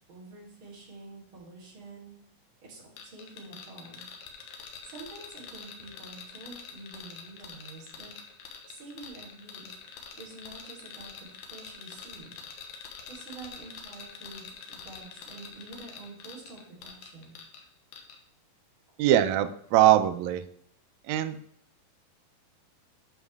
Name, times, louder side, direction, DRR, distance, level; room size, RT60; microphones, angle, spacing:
voice 1, 0.1-2.2 2.6-4.1 4.8-8.1 8.7-9.7 10.2-12.4 13.1-17.4, right 3 dB, 35° right, -7 dB, 4.4 m, -47 dB
sound 1, 3.0-17.6 17.9-18.2, left 6 dB, 80° left, 3.0 m, -45 dB
voice 2, 19.0-20.4 21.1-21.4, right 12 dB, 85° right, 9 dB, 1.6 m, -22 dB
11.5 x 6.3 x 3.5 m, 0.67 s
omnidirectional pair, 4.0 m